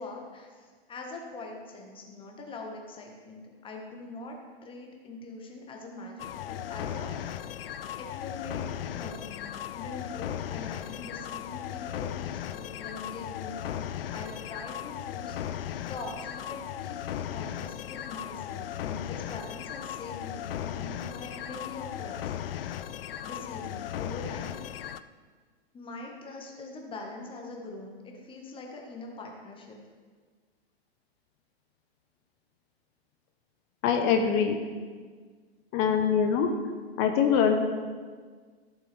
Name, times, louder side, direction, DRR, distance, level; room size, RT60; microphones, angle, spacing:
voice 1, 0.0-4.4 4.6-7.5 8.0-13.8 14.1-22.8 23.2-24.8 25.7-29.8, left 3 dB, 15° left, 1 dB, 1.6 m, -43 dB
sound 1, 6.2-25.0, left 10 dB, 60° left, 0.5 m, -37 dB
voice 2, 33.8-34.6 35.7-36.5 37.0-37.6, left 7 dB, 35° left, 5 dB, 1.0 m, -23 dB
14.0 x 7.8 x 3.5 m, 1.6 s
figure-of-eight pair, 110°, 32 cm